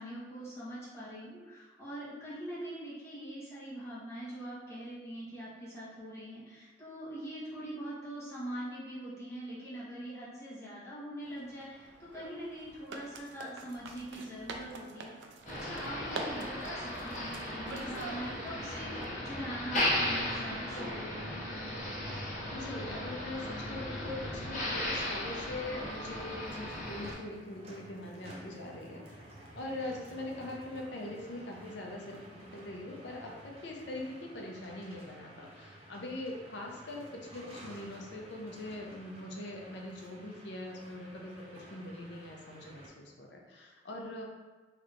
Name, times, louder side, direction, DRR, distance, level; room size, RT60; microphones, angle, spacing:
voice 1, 0.0-15.1 15.5-21.4, equal, 15° left, -10 dB, 1.1 m, -43 dB
sound 1, 11.2-19.0, right 3 dB, 85° right, 0.4 m, -46 dB
Motor vehicle (road), 15.4-27.1, left 1 dB, 45° left, 0.9 m, -36 dB
voice 2, 22.1-44.2, left 1 dB, 70° left, 0 dB, 0.6 m, -42 dB
sound 2, 24.9-42.9, right 1 dB, 35° right, 0.5 m, -53 dB
3.3 x 3.0 x 2.5 m, 1.4 s
head